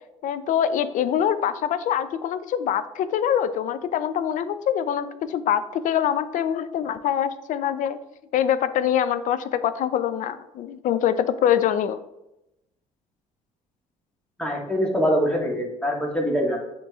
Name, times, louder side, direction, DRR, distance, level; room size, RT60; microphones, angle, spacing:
voice 1, 0.2-8.0 8.3-12.0, left 9 dB, 60° left, 12 dB, 0.4 m, -24 dB
voice 2, 14.4-16.6, equal, 5° left, -2 dB, 1.5 m, -24 dB
7.3 x 3.0 x 2.4 m, 0.90 s
supercardioid pair, 80°, 15 cm